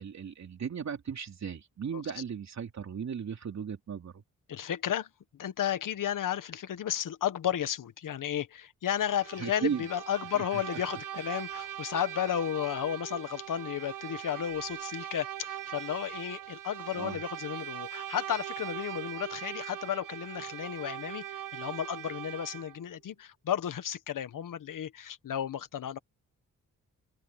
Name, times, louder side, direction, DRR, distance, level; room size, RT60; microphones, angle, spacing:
voice 1, 0.0-4.2 9.4-9.9 10.3-10.6 17.0-17.2, right 7 dB, 55° right, 3.2 m, -36 dB
voice 2, 4.5-26.0, left 10 dB, 75° left, 1.4 m, -33 dB
Bowed string instrument, 8.9-22.8, right 11 dB, 75° right, 0.8 m, -41 dB
open air
wide cardioid pair, 115°, 32 cm